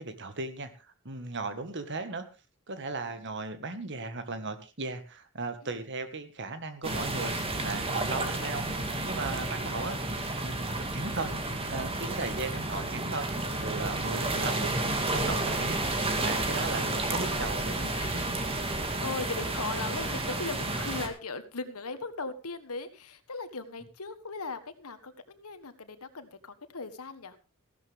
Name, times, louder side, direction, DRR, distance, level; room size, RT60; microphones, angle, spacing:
voice 1, 0.0-2.3 2.7-8.7 9.0-13.3 13.6-18.2, right 3 dB, 55° right, 10 dB, 1.7 m, -37 dB
sound 1, 6.8-21.1, right 2 dB, 25° right, 2.1 m, -31 dB
voice 2, 18.0-18.3 19.0-27.4, left 3 dB, 90° left, 10 dB, 1.5 m, -39 dB
15.5 x 12.5 x 3.5 m, 0.31 s
head